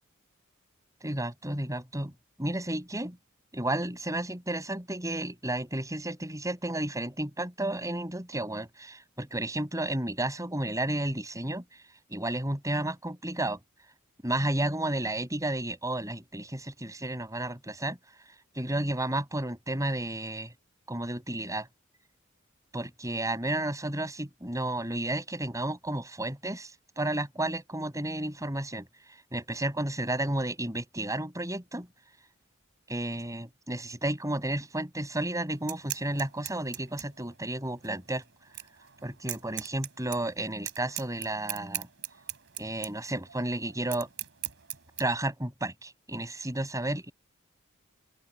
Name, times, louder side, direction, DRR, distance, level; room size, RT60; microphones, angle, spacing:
voice 1, 1.0-2.1 2.4-3.2 3.5-11.6 12.1-13.6 14.2-18.0 18.5-20.5 20.9-21.7 22.7-26.7 27.0-28.9 29.3-31.9 32.9-38.2 39.0-41.9 42.6-44.1 45.0-47.1, right 1 dB, 15° right, 6.2 m, -32 dB
sound 1, 35.5-45.0, right 14 dB, 60° right, 4.7 m, -40 dB
open air
head